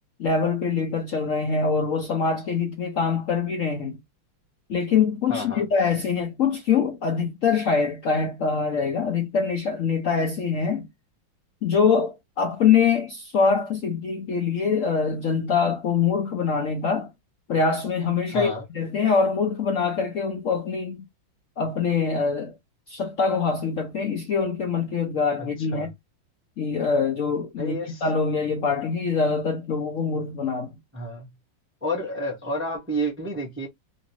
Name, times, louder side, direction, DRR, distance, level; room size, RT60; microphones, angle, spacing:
voice 1, 0.2-4.0 4.7-10.9 11.6-17.1 17.5-21.0 21.6-22.5 22.9-25.9 26.6-30.7, left 5 dB, 65° left, 0.8 m, -24 dB
voice 2, 5.3-5.6 18.3-18.6 25.4-25.9 27.6-28.0 30.9-31.3 31.8-33.7, equal, 10° right, 0.6 m, -30 dB
3.1 x 2.8 x 2.9 m
omnidirectional pair, 2.1 m